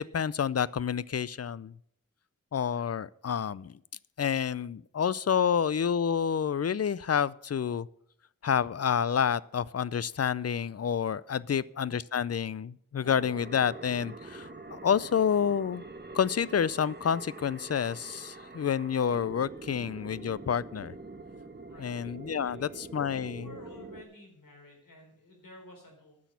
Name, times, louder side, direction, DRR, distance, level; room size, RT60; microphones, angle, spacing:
voice 1, 0.0-1.7 2.5-3.7 4.2-7.9 8.4-15.8 16.1-20.9 21.8-23.5, left 7 dB, 50° left, 20 dB, 0.4 m, -29 dB
voice 2, 11.3-11.6 21.7-22.0 22.4-22.8 23.1-26.2, left 1 dB, 85° left, 1 dB, 3.9 m, -52 dB
sound 1, 13.0-24.0, right 3 dB, 30° right, 1.2 m, -45 dB
10.0 x 6.3 x 8.2 m, 0.70 s
wide cardioid pair, 50°, 33 cm